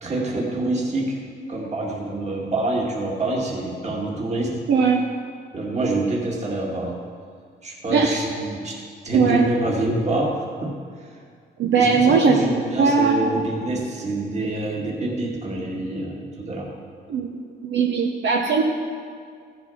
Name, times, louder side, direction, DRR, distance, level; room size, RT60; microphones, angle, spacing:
voice 1, 0.0-4.5 5.5-7.0 7.6-11.1 11.8-16.7, right 2 dB, 35° right, -2 dB, 2.2 m, -26 dB
voice 2, 4.7-5.0 7.9-8.2 9.1-9.4 11.6-12.4 12.8-13.4 17.1-17.3 17.6-18.6, right 5 dB, 65° right, 1 dB, 1.0 m, -19 dB
15.0 x 6.8 x 5.7 m, 2.1 s
cardioid pair, 90°, 20 cm